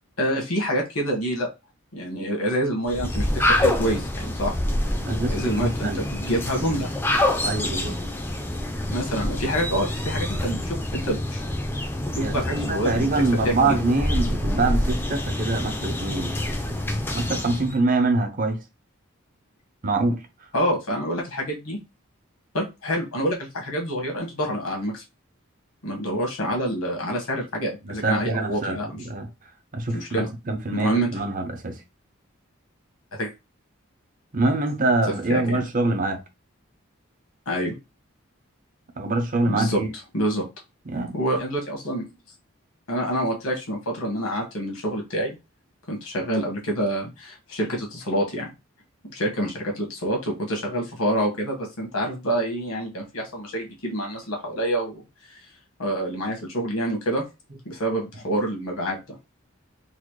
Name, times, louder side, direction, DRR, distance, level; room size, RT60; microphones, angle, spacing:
voice 1, 0.2-1.5 1.9-4.5 5.3-6.9 8.9-11.4 12.1-13.1 13.4-13.7 20.5-21.8 22.5-25.0 25.8-28.9 29.9-30.3 30.7-31.1 33.2-33.3 35.3-35.6 37.5-37.7 39.5-39.8 40.1-40.4 41.1-42.1 42.9-45.3 45.9-48.5 49.1-55.0 55.8-57.2 57.6-59.0, equal, 90° left, 1.3 m, -27 dB
sound 1, 2.9-17.7, left 1 dB, 10° left, 0.4 m, -27 dB
voice 2, 5.0-6.0 7.4-8.0 12.2-16.4 17.1-18.6 19.8-20.2 27.8-28.8 29.0-29.3 29.7-31.8 34.3-36.2 39.0-39.9 40.9-41.2, right 2 dB, 40° right, 0.6 m, -25 dB
4.0 x 2.1 x 3.1 m
head